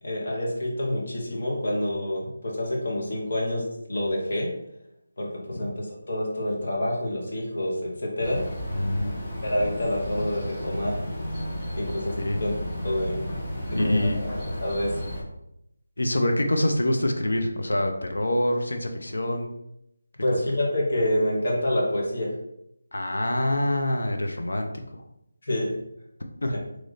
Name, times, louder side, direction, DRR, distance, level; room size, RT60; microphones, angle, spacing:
voice 1, 0.0-4.5 5.2-8.4 9.4-11.0 11.8-12.1 12.4-12.5 12.8-13.3 13.7-15.0 20.2-22.3 25.4-25.7, left 1 dB, 55° left, -2 dB, 1.2 m, -27 dB
sound 1, 8.2-15.2, equal, 15° left, 0.8 m, -33 dB
voice 2, 8.7-9.1 12.3-12.4 13.7-14.2 16.0-19.5 22.9-24.7 26.4-26.6, left 1 dB, 85° left, 4 dB, 0.6 m, -25 dB
3.1 x 2.5 x 3.9 m, 0.80 s
figure-of-eight pair, 170°, 0 cm